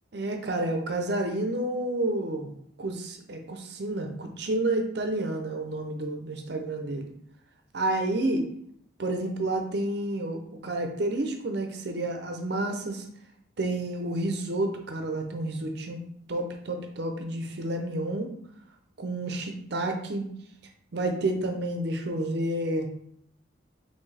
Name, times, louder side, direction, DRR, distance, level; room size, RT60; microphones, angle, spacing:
voice 1, 0.1-7.1 7.7-8.5 9.0-13.1 13.6-16.0 16.3-18.3 19.0-20.2 20.9-22.9, right 1 dB, 55° right, 4 dB, 0.6 m, -30 dB
4.5 x 3.1 x 3.3 m, 0.70 s
head